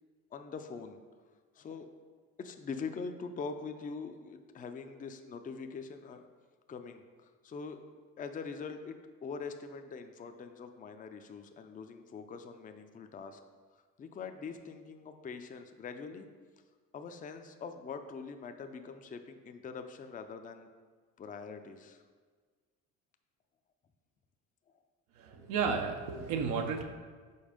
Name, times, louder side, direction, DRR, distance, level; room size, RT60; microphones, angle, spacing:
voice 1, 0.3-1.0 1.5-1.9 2.4-6.3 6.7-7.8 8.2-13.4 14.0-16.3 16.9-20.7 21.2-22.0, left 5 dB, 25° left, 7 dB, 0.5 m, -43 dB
voice 2, 25.2-26.8, right 5 dB, 75° right, 4 dB, 0.8 m, -32 dB
5.4 x 4.2 x 5.0 m, 1.5 s
supercardioid pair, 85°, 32 cm